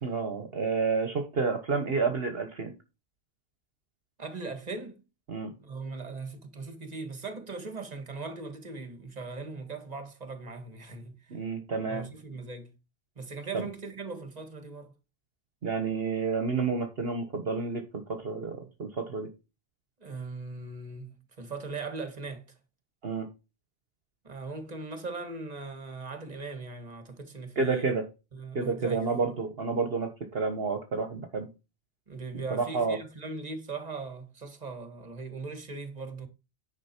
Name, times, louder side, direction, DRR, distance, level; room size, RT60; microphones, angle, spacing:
voice 1, 0.0-2.7 5.3-5.5 11.3-12.0 13.5-13.7 15.6-19.3 23.0-23.3 27.5-28.1 28.5-31.5 32.5-33.0, right 4 dB, 55° right, 1.5 m, -30 dB
voice 2, 4.2-5.0 5.6-11.4 11.9-12.7 13.2-14.9 20.0-22.5 24.2-28.0 28.3-29.3 32.1-36.3, right 3 dB, 35° right, 1.9 m, -39 dB
10.0 x 6.1 x 4.5 m
omnidirectional pair, 1.2 m